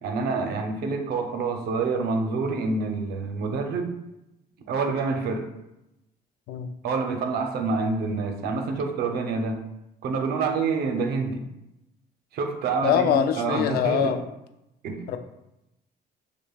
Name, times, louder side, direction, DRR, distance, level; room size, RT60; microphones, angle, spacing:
voice 1, 0.0-3.9 4.7-5.5 6.8-9.6 10.0-11.5 12.3-14.1 14.8-15.0, right 4 dB, 70° right, 4 dB, 0.6 m, -27 dB
voice 2, 12.8-14.2 15.1-15.2, left 8 dB, 65° left, 8 dB, 0.4 m, -23 dB
6.3 x 2.2 x 2.3 m, 0.89 s
cardioid pair, 110°, 17 cm